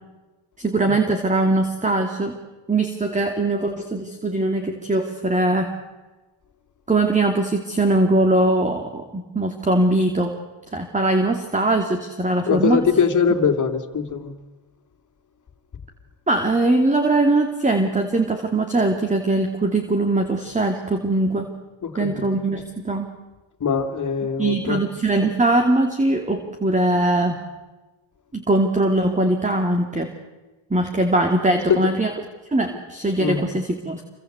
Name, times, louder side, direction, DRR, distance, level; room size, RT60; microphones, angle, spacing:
voice 1, 0.6-2.4 2.7-5.7 6.9-10.4 10.7-12.8 16.3-21.5 21.9-23.1 24.4-27.4 28.3-30.1 30.7-32.1 32.5-34.0, right 2 dB, 15° right, 5 dB, 2.7 m, -21 dB
voice 2, 12.5-14.3 21.8-22.2 23.6-24.8 31.7-31.9 32.7-32.8 33.2-33.4, left 6 dB, 40° left, 6 dB, 3.1 m, -22 dB
28.0 x 24.0 x 8.2 m, 1.2 s
cardioid pair, 120°, 46 cm